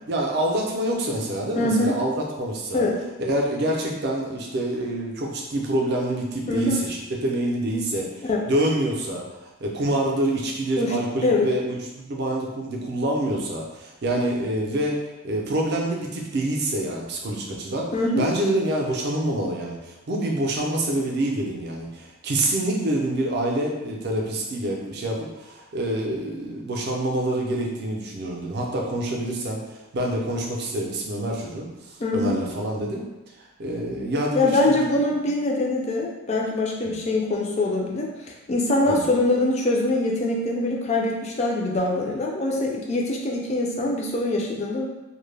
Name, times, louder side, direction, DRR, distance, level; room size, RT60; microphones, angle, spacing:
voice 1, 0.1-2.8 3.2-33.0 33.4-34.9 36.8-36.9 38.9-39.0, right 1 dB, 50° right, -1 dB, 0.4 m, -26 dB
voice 2, 1.6-2.0 2.7-3.0 6.5-6.8 8.3-8.4 10.8-11.0 11.2-11.5 17.9-18.3 32.0-32.4 34.4-38.1 38.5-44.9, left 2 dB, 30° left, -1 dB, 0.3 m, -23 dB
2.2 x 2.0 x 3.2 m, 1.0 s
head